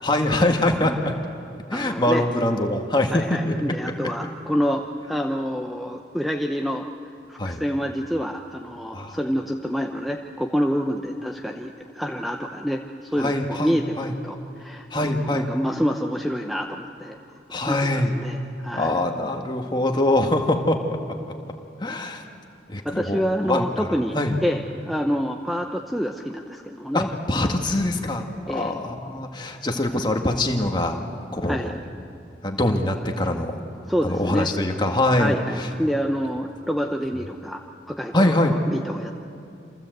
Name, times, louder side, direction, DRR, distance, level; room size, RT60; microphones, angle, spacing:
voice 1, 0.0-1.1 1.7-3.6 7.4-7.6 8.9-9.2 13.2-14.1 14.9-15.5 17.5-18.1 18.7-20.8 21.8-22.2 22.7-24.4 26.9-31.0 31.3-31.7 32.4-33.6 34.0-35.7 38.1-38.5, left 1 dB, 25° left, 3 dB, 1.8 m, -23 dB
voice 2, 1.7-2.2 3.1-6.9 7.3-14.0 14.2-17.2 17.7-17.9 18.2-18.9 22.8-27.1 28.5-28.7 31.5-31.7 33.9-34.5 35.2-39.1, equal, ahead, 3 dB, 0.7 m, -27 dB
27.5 x 26.5 x 8.0 m, 2.7 s
head